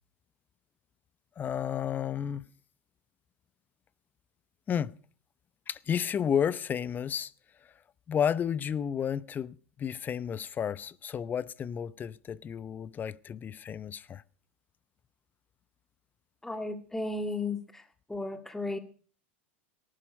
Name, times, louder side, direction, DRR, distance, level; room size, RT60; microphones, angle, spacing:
voice 1, 1.4-2.4 4.7-5.0 5.7-7.3 8.1-14.2, left 8 dB, 30° left, 0.8 m, -32 dB
voice 2, 16.4-17.8 18.1-18.8, left 2 dB, 5° left, 2.0 m, -34 dB
18.5 x 11.5 x 5.3 m
hypercardioid pair, 90°, 6 cm